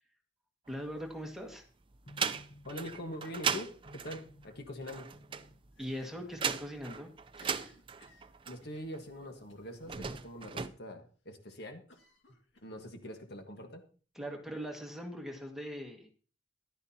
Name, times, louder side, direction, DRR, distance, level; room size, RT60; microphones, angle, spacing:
voice 1, 0.7-1.6 5.8-7.1 14.2-16.1, equal, ahead, 1 dB, 1.9 m, -41 dB
sound 1, 0.7-1.5 1.9-9.0 9.7-10.7, right 6 dB, 30° right, 0.5 m, -37 dB
sound 2, 2.1-3.1 3.9-4.7 5.1-5.8 6.4-7.0, left 1 dB, 40° left, 1.0 m, -57 dB
voice 2, 2.6-5.1 8.5-11.9 12.6-13.9, left 1 dB, 60° left, 5 dB, 1.5 m, -44 dB
Cough, 5.7-6.5 6.8-6.9 7.3-8.8 9.5-9.8 10.1-10.2 10.5-10.6 11.9-13.1, left 2 dB, 75° left, 2.0 m, -61 dB
14.0 x 11.5 x 2.9 m, 0.39 s
head